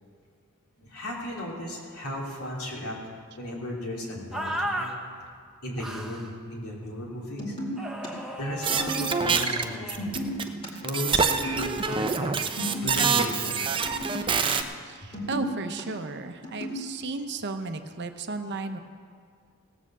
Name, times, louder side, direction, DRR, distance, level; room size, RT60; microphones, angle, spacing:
voice 1, 0.8-3.0 3.4-5.0 5.6-7.6 8.3-10.2 10.8-13.8 15.0-15.1, left 1 dB, 85° left, -3 dB, 2.8 m, -35 dB
sound 1, 4.3-4.9 5.8-6.3 7.8-10.1, equal, ahead, 0.8 m, -35 dB
sound 2, 7.4-8.1 8.6-9.4 9.8-10.7 11.3-11.6 11.9-12.0 12.2-13.3 13.8-14.5 15.0-15.8 16.4-16.8, equal, 25° left, 2.2 m, -34 dB
sound 3, 8.6-10.4 10.7-14.6, right 5 dB, 20° right, 0.5 m, -26 dB
voice 2, 14.9-18.8, right 3 dB, 50° right, 7 dB, 0.8 m, -34 dB
17.0 x 6.8 x 7.3 m, 2.1 s
head